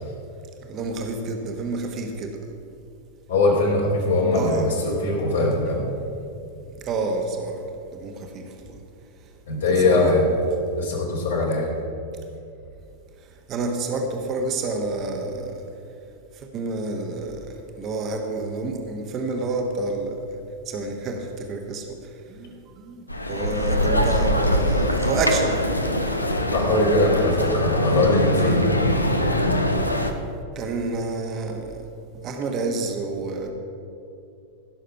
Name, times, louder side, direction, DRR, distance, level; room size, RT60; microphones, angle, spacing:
voice 1, 0.6-2.4 4.3-4.6 6.8-8.8 9.8-10.0 13.5-15.6 16.3-20.3 20.7-22.0 22.3-25.6 30.5-31.9 32.2-33.5, right 3 dB, 35° right, 4 dB, 1.2 m, -29 dB
voice 2, 3.3-5.9 9.5-10.3 10.7-11.7 23.8-24.0 26.5-28.6 29.9-30.0, left 2 dB, 65° left, -2 dB, 3.0 m, -21 dB
sound 1, 23.1-30.1, left 1 dB, 85° left, 0.8 m, -23 dB
16.0 x 6.5 x 5.7 m, 2.6 s
figure-of-eight pair, 90°, 0 cm